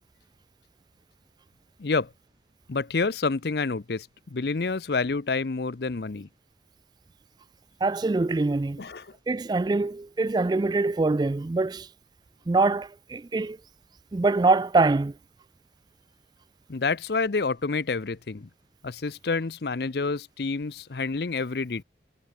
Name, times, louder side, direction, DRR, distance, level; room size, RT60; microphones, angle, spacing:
voice 1, 1.8-2.1 2.7-6.3 8.8-9.1 16.7-18.5 18.8-21.8, left 4 dB, 60° left, 0.6 m, -28 dB
voice 2, 7.8-8.8 9.3-11.9 12.5-13.6 14.1-15.1, right 3 dB, 20° right, 0.3 m, -24 dB
head